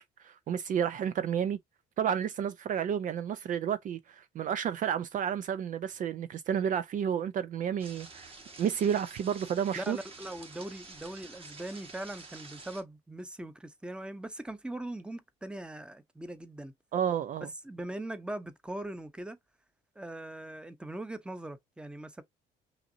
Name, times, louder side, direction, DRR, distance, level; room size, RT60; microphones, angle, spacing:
voice 1, 0.0-1.6 2.0-8.3 8.6-10.0 16.9-17.5, right 8 dB, 50° right, 0.5 m, -31 dB
sound 1, 7.8-12.8, right 3 dB, 35° right, 1.5 m, -49 dB
voice 2, 9.7-16.7 17.4-19.4 20.0-22.2, right 1 dB, 5° right, 0.8 m, -40 dB
5.8 x 2.6 x 2.6 m
cardioid pair, 110°, 17 cm